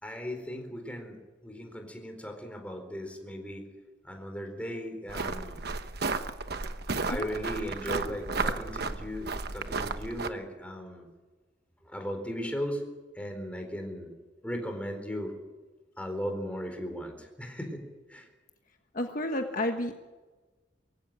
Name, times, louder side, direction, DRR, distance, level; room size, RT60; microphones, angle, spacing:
voice 1, 0.0-3.6 4.0-5.6 7.1-11.1 11.8-12.8 13.1-14.1 14.4-15.3 16.0-18.3, equal, 5° left, 4 dB, 4.2 m, -37 dB
sound 1, 5.1-10.3, right 3 dB, 60° right, 1.1 m, -33 dB
voice 2, 18.9-20.0, left 1 dB, 45° left, 5 dB, 1.4 m, -31 dB
23.0 x 16.0 x 8.9 m, 1.3 s
head